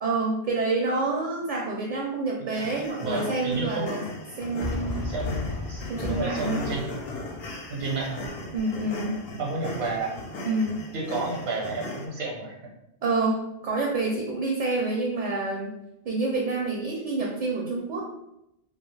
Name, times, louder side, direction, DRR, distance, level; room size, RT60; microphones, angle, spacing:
voice 1, 0.0-4.0 4.4-5.0 5.9-6.7 8.5-9.2 10.4-10.8 13.0-15.7 16.1-18.0, right 3 dB, 55° right, -1 dB, 0.6 m, -28 dB
sound 1, 2.5-12.1, left 2 dB, 70° left, 0.8 m, -37 dB
voice 2, 3.0-4.0 5.0-7.0 7.7-8.4 9.4-10.2 10.9-12.5, right 3 dB, 80° right, -2 dB, 0.9 m, -31 dB
Fireworks, 4.6-9.6, left 2 dB, 40° left, 0.8 m, -36 dB
2.4 x 2.3 x 3.1 m, 0.86 s
omnidirectional pair, 1.0 m